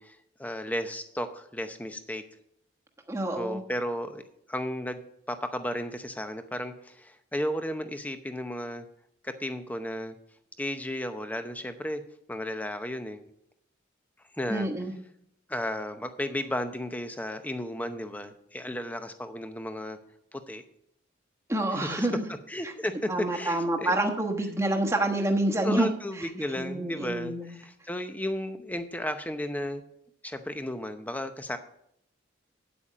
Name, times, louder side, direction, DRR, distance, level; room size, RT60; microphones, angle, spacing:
voice 1, 0.0-2.2 3.4-4.2 4.5-5.0 5.3-8.8 9.2-10.2 10.6-12.0 12.3-13.2 14.4-14.7 15.5-20.0 20.3-20.6 21.7-22.1 22.5-23.9 25.6-29.8 30.2-31.6, left 1 dB, 10° left, 8 dB, 0.7 m, -34 dB
voice 2, 3.1-3.6 14.5-14.9 21.5-22.2 22.6-22.7 23.1-26.3 26.6-27.6, right 1 dB, 15° right, 2 dB, 1.2 m, -28 dB
8.9 x 8.6 x 5.0 m, 0.73 s
head